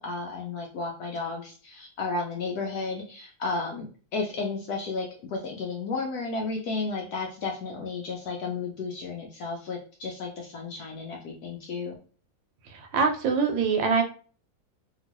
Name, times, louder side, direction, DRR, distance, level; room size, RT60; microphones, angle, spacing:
voice 1, 0.0-12.0, left 3 dB, 70° left, 0 dB, 0.9 m, -33 dB
voice 2, 12.7-14.0, right 5 dB, 80° right, 5 dB, 1.3 m, -24 dB
2.9 x 2.8 x 2.9 m, 0.39 s
omnidirectional pair, 2.1 m